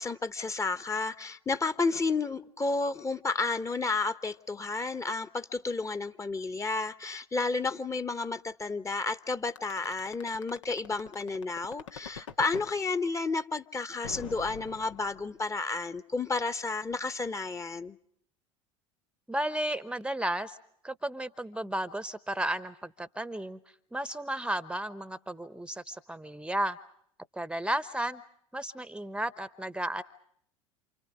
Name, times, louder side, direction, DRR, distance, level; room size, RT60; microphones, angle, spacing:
voice 1, 0.0-18.0, left 3 dB, 20° left, 1.2 m, -31 dB
sound 1, 9.5-12.7 14.0-15.4, left 7 dB, 75° left, 1.5 m, -43 dB
voice 2, 19.3-20.6 20.8-23.6 23.9-26.8 27.3-28.2 28.5-30.0, right 1 dB, 5° right, 1.0 m, -33 dB
28.5 x 28.5 x 5.0 m
figure-of-eight pair, 70°, 16 cm